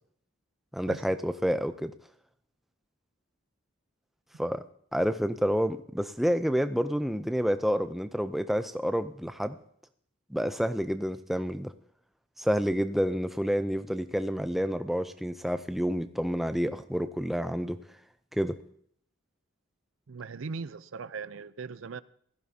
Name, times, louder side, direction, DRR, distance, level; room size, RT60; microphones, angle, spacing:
voice 1, 0.7-1.9 4.4-4.6 4.9-9.6 10.3-11.7 12.4-17.8 18.3-18.6, equal, ahead, 0.5 m, -29 dB
voice 2, 20.1-22.0, right 5 dB, 70° right, 0.5 m, -39 dB
17.0 x 14.5 x 2.8 m
head